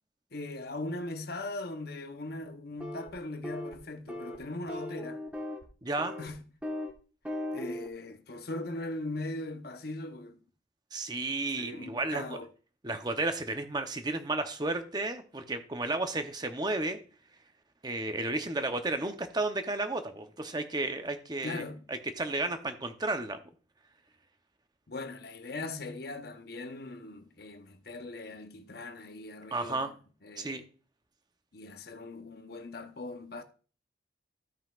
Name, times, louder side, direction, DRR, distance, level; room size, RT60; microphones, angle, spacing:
voice 1, 0.3-5.2 6.2-6.4 7.5-10.4 11.6-12.5 21.4-21.9 24.9-29.9 30.2-30.6 31.5-33.4, left 2 dB, 55° left, 0.8 m, -40 dB
sound 1, 2.8-3.1 3.4-3.8 4.1-4.4 4.7-5.7 6.0-6.3 6.6-6.9 7.2-7.9, left 1 dB, 5° right, 1.3 m, -37 dB
voice 2, 5.8-6.1 10.9-12.4 12.8-17.0 17.8-21.6 21.9-23.4 29.5-29.9 30.4-30.6, right 2 dB, 25° right, 0.8 m, -33 dB
15.5 x 5.7 x 2.4 m
head